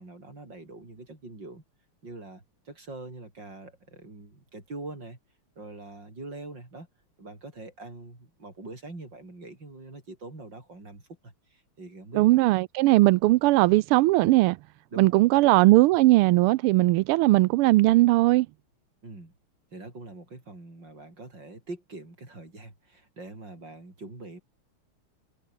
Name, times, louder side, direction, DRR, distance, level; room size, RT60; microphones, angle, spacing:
voice 1, 0.0-1.6 2.0-5.2 5.6-6.9 7.2-12.4 14.9-15.3 19.0-19.3 19.7-24.4, right 2 dB, 55° right, 7.6 m, -43 dB
voice 2, 12.1-14.6 15.0-18.5, right 18 dB, 85° right, 1.5 m, -19 dB
omnidirectional pair, 2.4 m